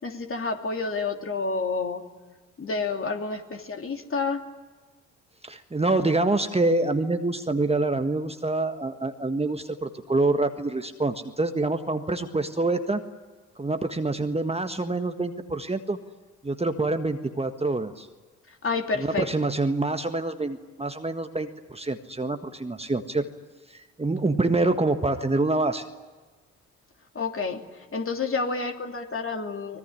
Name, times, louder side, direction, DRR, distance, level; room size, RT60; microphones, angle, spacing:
voice 1, 0.0-2.0 2.6-4.5 18.5-19.3 27.1-29.8, left 4 dB, 35° left, 4 dB, 3.0 m, -29 dB
voice 2, 5.4-13.0 13.6-16.0 16.4-18.1 19.1-23.2 23.7-25.8, right 2 dB, 15° right, 7 dB, 1.6 m, -26 dB
24.5 x 20.5 x 9.9 m, 1.3 s
figure-of-eight pair, 45°, 39 cm